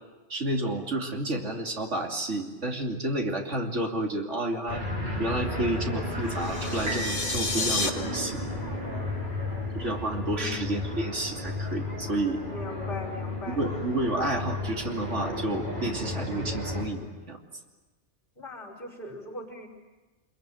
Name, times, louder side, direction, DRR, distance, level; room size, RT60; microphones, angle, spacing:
voice 1, 0.3-4.8 5.2-8.4 9.7-12.4 13.5-17.4, right 1 dB, 80° right, 1 dB, 3.1 m, -30 dB
sound 1, 4.7-16.9, left 2 dB, 40° right, 6.1 m, -33 dB
sound 2, 6.3-7.9, left 3 dB, 85° left, 2.7 m, -30 dB
sound 3, 6.9-10.8 11.4-11.5, right 3 dB, 60° right, 2.7 m, -42 dB
voice 2, 10.3-10.9 12.5-13.7 14.1-14.4 18.4-19.7, left 2 dB, 45° left, -1 dB, 5.4 m, -40 dB
27.0 x 22.5 x 9.4 m, 1.2 s
omnidirectional pair, 1.2 m